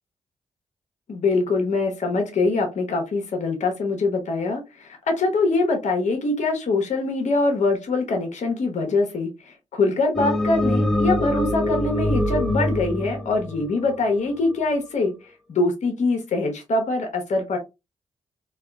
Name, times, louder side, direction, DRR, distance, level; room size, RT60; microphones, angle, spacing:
voice 1, 1.1-15.1 15.5-17.6, left 3 dB, 65° left, 4 dB, 0.9 m, -23 dB
sound 1, 10.1-14.5, left 1 dB, ahead, 0.5 m, -24 dB
3.3 x 2.3 x 2.3 m, 0.24 s
cardioid pair, 55°, 13 cm